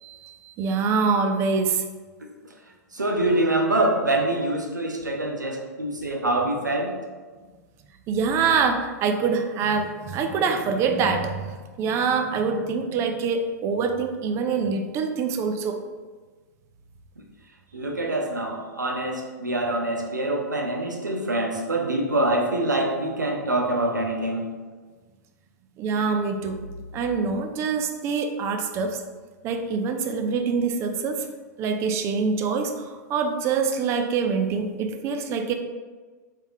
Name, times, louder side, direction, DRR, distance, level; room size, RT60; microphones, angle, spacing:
voice 1, 0.0-1.8 8.1-15.8 25.8-26.6 26.9-29.0 29.4-31.3 31.6-35.5, right 5 dB, 30° right, 6 dB, 0.4 m, -25 dB
voice 2, 2.9-7.0 17.7-24.5, right 1 dB, 90° right, 2 dB, 0.6 m, -25 dB
3.4 x 3.3 x 2.7 m, 1.4 s
figure-of-eight pair, 105°, 10 cm